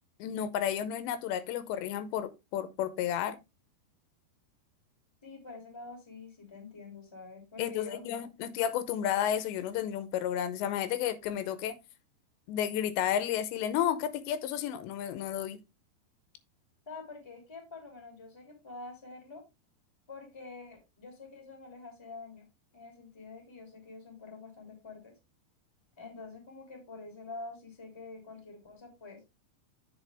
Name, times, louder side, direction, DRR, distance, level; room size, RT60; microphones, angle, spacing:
voice 1, 0.2-3.4 7.6-11.7 12.5-15.6, left 10 dB, 85° left, 3.1 m, -32 dB
voice 2, 5.2-8.1 16.9-19.4 20.1-22.4 22.7-25.1 26.0-29.2, left 3 dB, 10° left, 2.0 m, -47 dB
8.3 x 6.1 x 3.4 m
omnidirectional pair, 5.0 m